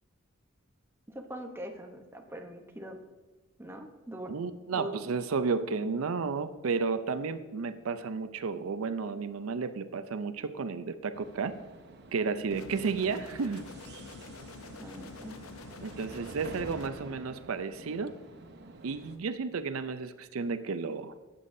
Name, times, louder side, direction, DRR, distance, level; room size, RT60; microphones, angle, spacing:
voice 1, 1.1-3.0 3.6-4.3 4.7-5.0 14.8-15.4, right 1 dB, 10° right, 3 dB, 0.8 m, -42 dB
voice 2, 4.3-11.5 12.1-13.6 15.8-18.1 18.8-21.1, right 4 dB, 90° right, 12 dB, 0.5 m, -32 dB
sound 1, 11.1-19.2, right 2 dB, 55° right, 0.8 m, -48 dB
sound 2, 12.5-16.9, left 4 dB, 90° left, 0.6 m, -47 dB
12.5 x 8.3 x 2.7 m, 1.3 s
head